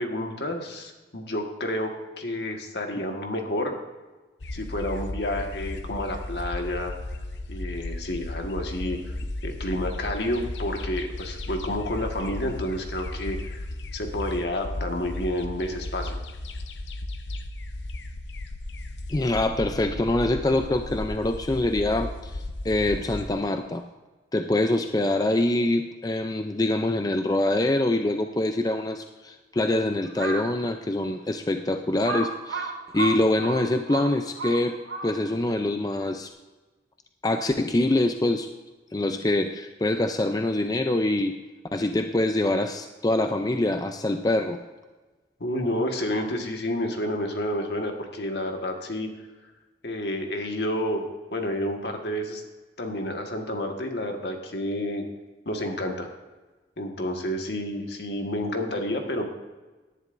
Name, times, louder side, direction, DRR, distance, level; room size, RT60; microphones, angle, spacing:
voice 1, 0.0-3.7 4.5-6.9 7.5-9.2 9.4-13.6 13.9-16.2 45.4-49.1 49.8-52.4 52.8-55.0 55.4-56.1 56.8-59.2, left 1 dB, 70° left, 3 dB, 1.6 m, -30 dB
sound 1, 4.4-23.3, left 1 dB, 85° left, 0.8 m, -35 dB
voice 2, 19.1-23.8 24.3-36.3 37.2-38.5 38.9-41.4 41.7-44.6, left 1 dB, 20° left, 6 dB, 0.4 m, -25 dB
Crow, 30.1-30.6 31.1-31.2 32.0-35.4, right 4 dB, 90° right, 1.6 m, -32 dB
17.5 x 11.0 x 2.6 m, 1.2 s
head